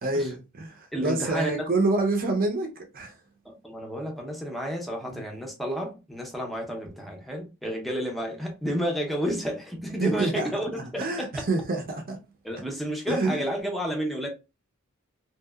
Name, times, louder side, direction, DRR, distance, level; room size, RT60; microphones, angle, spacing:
voice 1, 0.0-2.7 2.9-3.2 5.0-5.2 10.0-10.5 11.0-12.2 13.1-13.5, right 2 dB, 45° right, 0.6 m, -27 dB
voice 2, 0.9-1.6 3.4-11.4 12.4-14.3, equal, ahead, 0.5 m, -31 dB
2.8 x 2.0 x 2.2 m
head